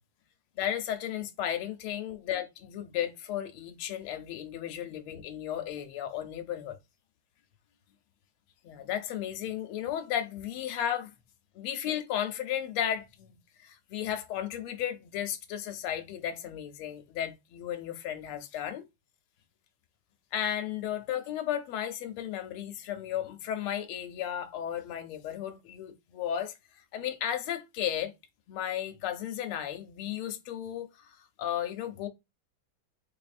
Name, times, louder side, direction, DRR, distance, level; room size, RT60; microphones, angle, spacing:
voice 1, 0.6-6.8 8.6-11.1 11.5-18.8 20.3-28.1 28.5-32.1, left 10 dB, 90° left, 1.5 m, -34 dB
3.6 x 3.4 x 2.5 m
omnidirectional pair, 2.3 m